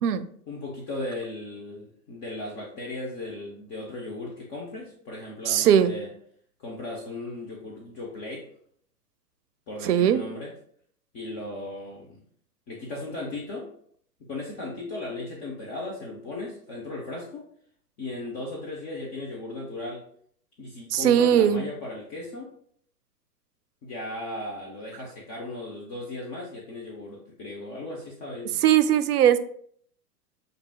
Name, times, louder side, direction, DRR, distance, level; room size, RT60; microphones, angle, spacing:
voice 1, 0.5-6.1 6.6-8.5 9.7-10.5 11.1-12.2 12.7-13.7 14.2-17.5 18.0-20.0 20.6-22.6 23.8-28.6, left 2 dB, 30° left, -1 dB, 0.8 m, -36 dB
voice 2, 5.5-5.9 9.8-10.2 20.9-21.6 28.6-29.4, right 9 dB, 70° right, 13 dB, 0.6 m, -19 dB
6.8 x 2.6 x 2.3 m, 0.62 s
hypercardioid pair, 110°, 49 cm